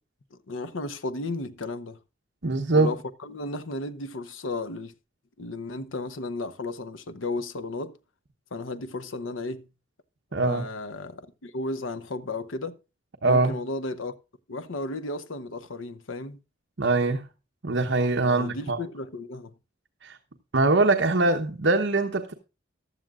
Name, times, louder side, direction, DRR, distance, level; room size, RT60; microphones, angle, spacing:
voice 1, 0.3-2.0 2.7-4.9 5.4-8.0 8.5-9.7 10.4-12.8 13.2-14.2 14.5-16.4 18.2-19.5, left 2 dB, 85° left, 0.8 m, -34 dB
voice 2, 2.4-2.9 10.3-10.6 13.2-13.5 16.8-17.3 17.6-18.8 20.0-20.2 20.5-22.3, right 3 dB, 65° right, 1.0 m, -22 dB
15.0 x 11.5 x 2.5 m
head